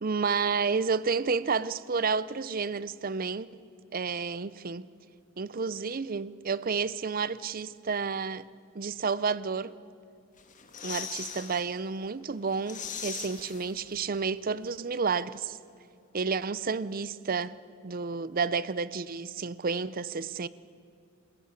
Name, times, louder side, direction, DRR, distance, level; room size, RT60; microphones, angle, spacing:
voice 1, 0.0-3.5 3.9-4.9 5.4-8.5 8.7-9.7 10.8-15.6 16.1-17.6 17.8-20.5, right 5 dB, 45° right, 0.6 m, -30 dB
sound 1, 10.4-11.7 12.0-12.1 12.4-14.2 14.5-14.6, left 7 dB, 40° left, 1.9 m, -40 dB
27.5 x 16.0 x 8.5 m
head